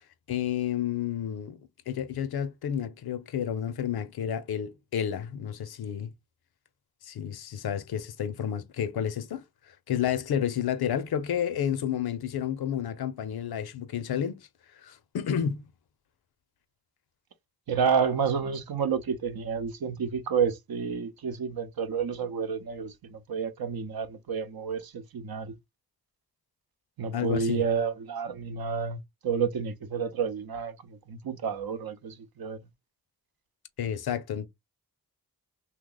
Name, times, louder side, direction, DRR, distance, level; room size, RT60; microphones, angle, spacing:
voice 1, 0.3-1.6 1.9-6.1 7.0-14.5 14.8-15.7 27.1-27.6 33.8-34.5, left 9 dB, 90° left, 0.6 m, -31 dB
voice 2, 17.7-25.5 27.0-32.6, right 6 dB, 80° right, 0.7 m, -30 dB
2.9 x 2.2 x 3.8 m
cardioid pair, 45°, 36 cm